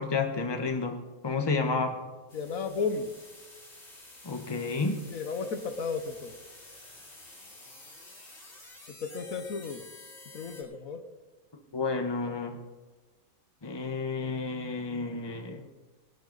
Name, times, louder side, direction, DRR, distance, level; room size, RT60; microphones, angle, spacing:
voice 1, 0.0-2.0 4.2-5.0 11.7-12.6 13.6-15.7, left 4 dB, 20° left, 5 dB, 1.1 m, -31 dB
voice 2, 2.3-3.1 5.1-6.3 9.0-9.8 10.3-11.0, left 5 dB, 75° left, 8 dB, 1.5 m, -33 dB
sound 1, 2.3-10.6, left 2 dB, 50° left, 3.6 m, -50 dB
19.5 x 11.0 x 4.0 m, 1.3 s
omnidirectional pair, 1.4 m